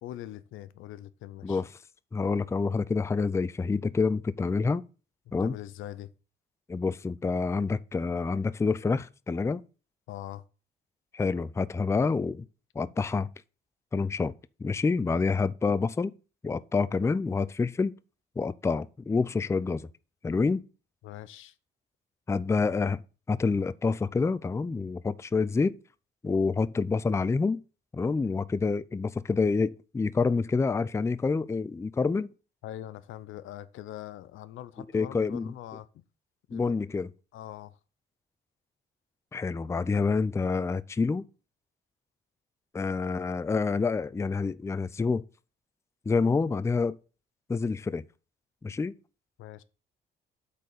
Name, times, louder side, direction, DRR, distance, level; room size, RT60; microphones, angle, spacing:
voice 1, 0.0-1.6 5.3-6.1 10.1-10.4 21.0-21.5 32.6-35.9 36.5-36.7 37.3-37.8 49.4-49.6, left 13 dB, 85° left, 0.6 m, -42 dB
voice 2, 2.1-4.8 5.3-5.5 6.7-9.6 11.1-12.5 12.8-13.3 13.9-14.3 14.6-16.1 16.4-17.9 18.4-19.9 20.2-20.6 22.3-23.0 23.3-25.7 26.2-27.6 27.9-32.3 34.9-35.5 36.5-37.1 39.3-41.3 42.7-45.2 46.1-47.0 47.5-48.0 48.6-48.9, left 4 dB, 15° left, 0.4 m, -27 dB
8.3 x 4.1 x 6.6 m
cardioid pair, 90°, 20 cm